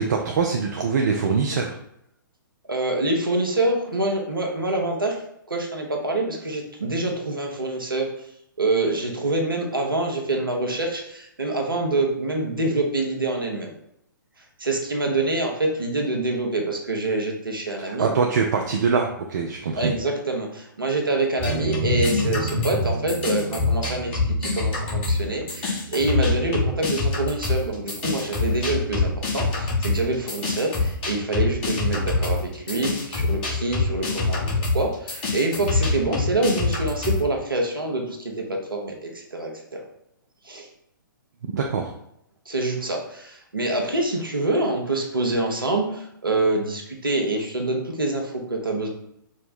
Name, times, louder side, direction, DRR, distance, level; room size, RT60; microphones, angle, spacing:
voice 1, 0.0-1.8 17.9-19.9 41.5-41.9, right 5 dB, 50° right, 1 dB, 0.5 m, -23 dB
voice 2, 2.7-5.2 5.5-8.3 8.6-13.7 14.4-18.1 19.7-39.8 40.4-40.7 42.4-48.9, right 2 dB, 80° right, 1 dB, 1.0 m, -26 dB
sound 1, 21.4-25.2 25.5-37.2, left 3 dB, 30° left, 1.2 m, -25 dB
sound 2, 21.5-30.9, right 8 dB, 15° right, 0.9 m, -37 dB
4.9 x 2.2 x 4.2 m, 0.77 s
figure-of-eight pair, 120°, 12 cm